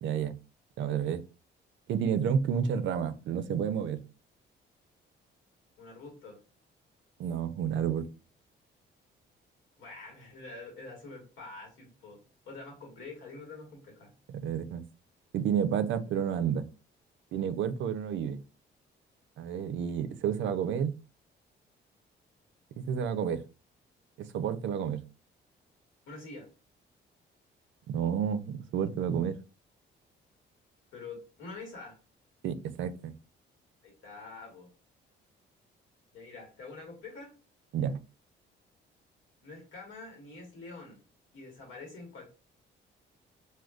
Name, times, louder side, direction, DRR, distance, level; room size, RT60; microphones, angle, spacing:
voice 1, 0.0-0.4 0.8-1.2 1.9-4.0 7.2-8.1 14.4-14.8 15.3-16.7 17.3-18.4 19.4-20.9 22.8-23.4 24.2-25.0 27.9-29.4 32.4-33.1 37.7-38.0, right 8 dB, 70° right, 0.4 m, -30 dB
voice 2, 5.8-6.4 9.8-14.1 26.1-26.5 30.9-32.0 33.8-34.7 36.1-37.4 39.4-41.0 41.3-42.2, left 3 dB, 90° left, 1.3 m, -46 dB
3.6 x 2.3 x 2.3 m
cardioid pair, 90°, 20 cm